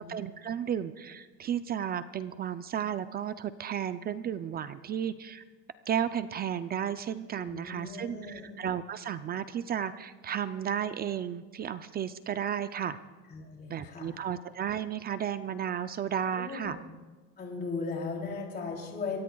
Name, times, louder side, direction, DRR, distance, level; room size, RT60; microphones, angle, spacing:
voice 1, 0.0-5.4 5.9-13.0 13.7-16.8, right 9 dB, 30° right, 12 dB, 0.4 m, -33 dB
voice 2, 7.4-8.5 13.3-14.2 16.3-16.8 17.4-19.2, left 4 dB, 30° left, 0 dB, 2.9 m, -37 dB
26.0 x 16.0 x 2.3 m, 1.3 s
cardioid pair, 140°, 33 cm